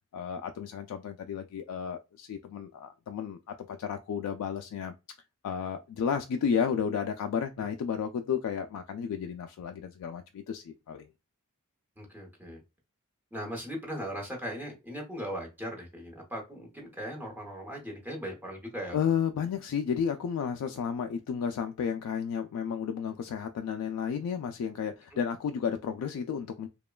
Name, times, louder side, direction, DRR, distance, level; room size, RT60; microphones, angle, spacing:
voice 1, 0.1-4.9 5.4-11.1 18.9-26.7, left 7 dB, 85° left, 0.3 m, -32 dB
voice 2, 12.0-12.6 13.3-19.0 25.1-25.2, equal, 10° right, 0.8 m, -38 dB
2.9 x 2.2 x 2.2 m
head